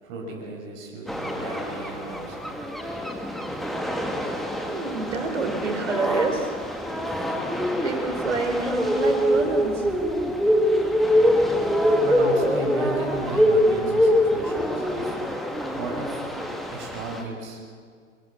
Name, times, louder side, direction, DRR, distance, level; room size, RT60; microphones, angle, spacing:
voice 1, 0.0-2.4 12.0-15.2 15.7-16.3 16.7-17.8, right 2 dB, 35° right, -1 dB, 5.9 m, -35 dB
sound 1, 1.1-17.2, equal, ahead, 1.9 m, -24 dB
voice 2, 4.5-6.5 7.8-9.9, right 3 dB, 65° right, 5 dB, 4.3 m, -27 dB
24.5 x 22.0 x 7.4 m, 2.1 s
figure-of-eight pair, 110°, 39 cm